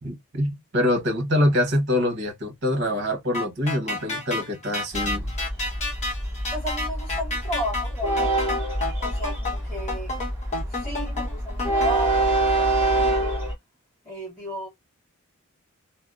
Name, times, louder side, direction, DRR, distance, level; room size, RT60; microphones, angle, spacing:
voice 1, 0.0-5.3, left 1 dB, 50° right, 0.9 m, -25 dB
sound 1, 3.3-11.9, left 2 dB, 30° left, 0.9 m, -30 dB
Train, 4.9-13.5, right 2 dB, 10° right, 0.8 m, -26 dB
voice 2, 6.5-8.6 9.0-10.1 10.7-13.4 14.0-14.7, equal, 10° left, 1.6 m, -34 dB
2.6 x 2.0 x 2.3 m
head